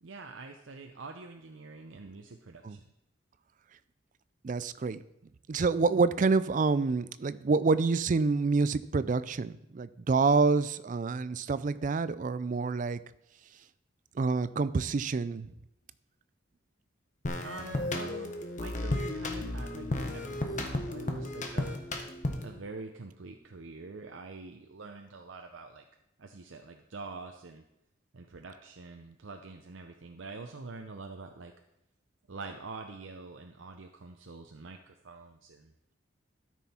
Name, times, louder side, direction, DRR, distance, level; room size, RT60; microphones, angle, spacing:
voice 1, 0.0-2.8 17.4-21.8 22.4-25.9 26.2-27.6 28.1-31.5 32.3-35.7, right 3 dB, 85° right, 4 dB, 0.7 m, -45 dB
voice 2, 4.4-5.0 5.5-13.0 14.2-15.5, right 4 dB, 40° right, 15 dB, 0.4 m, -27 dB
sound 1, 17.2-22.6, left 1 dB, 40° left, 1.1 m, -34 dB
12.5 x 6.2 x 4.3 m, 0.83 s
head